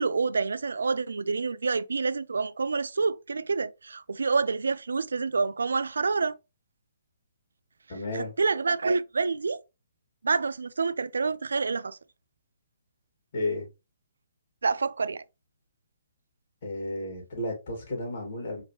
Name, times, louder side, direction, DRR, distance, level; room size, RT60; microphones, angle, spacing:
voice 1, 0.0-6.4 8.1-9.6 10.2-12.0 14.6-15.2, right 4 dB, 80° right, 0.3 m, -27 dB
voice 2, 7.9-8.3 13.3-13.7 16.6-18.6, left 1 dB, 55° left, 2.6 m, -32 dB
4.7 x 2.8 x 3.0 m
hypercardioid pair, 140°, 0 cm